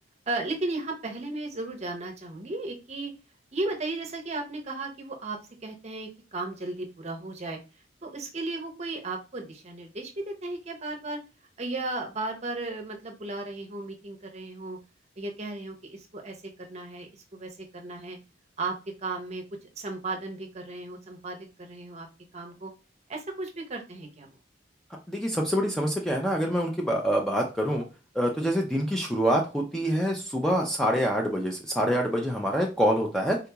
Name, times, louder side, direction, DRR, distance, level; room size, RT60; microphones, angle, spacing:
voice 1, 0.3-3.1 3.5-7.6 8.0-11.2 11.6-14.8 15.2-18.2 18.6-18.8 19.0-19.4 19.8-22.1 22.3-22.7 23.1-24.3, right 2 dB, 35° right, 3 dB, 0.6 m, -35 dB
voice 2, 25.1-27.8 28.2-33.4, equal, 5° left, 0 dB, 0.3 m, -26 dB
3.8 x 2.8 x 2.2 m, 0.31 s
head